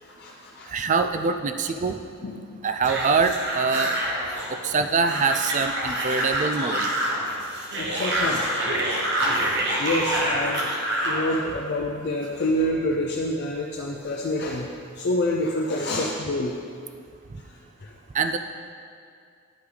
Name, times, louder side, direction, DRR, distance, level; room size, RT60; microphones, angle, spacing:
voice 1, 0.0-0.7 2.2-2.6 6.1-6.3 7.1-7.3 7.7-8.6 9.2-9.4 9.8-10.7 10.9-14.7 15.0-16.6 17.8-17.9, left 1 dB, 50° left, -1 dB, 0.5 m, -27 dB
voice 2, 0.7-2.0 2.6-3.9 4.5-6.9 18.1-18.4, right 5 dB, 35° right, 8 dB, 0.4 m, -24 dB
sound 1, 2.8-11.2, right 1 dB, 55° right, 1.3 m, -26 dB
11.0 x 5.7 x 4.0 m, 2.3 s
head